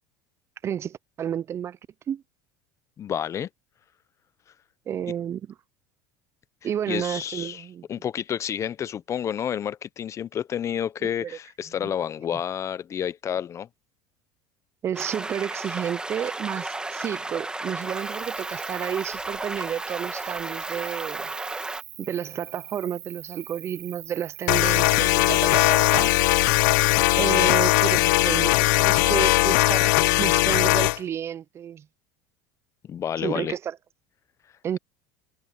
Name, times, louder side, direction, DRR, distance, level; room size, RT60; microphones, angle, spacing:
voice 1, 0.6-1.8 2.1-2.2 4.9-5.4 6.6-7.8 11.0-11.3 11.8-11.9 14.8-21.3 22.0-26.2 27.2-31.8 33.2-33.7 34.6-34.8, right 9 dB, 25° right, 0.4 m, -31 dB
voice 2, 3.0-3.5 6.9-13.7 32.8-33.6, left 9 dB, 30° left, 0.6 m, -30 dB
sound 1, 14.9-21.8, right 2 dB, 10° right, 1.7 m, -33 dB
Cricket, 17.8-29.7, right 22 dB, 75° right, 2.4 m, -44 dB
sound 2, 24.5-31.0, left 22 dB, 80° left, 0.6 m, -20 dB
supercardioid pair, 135°, 10 cm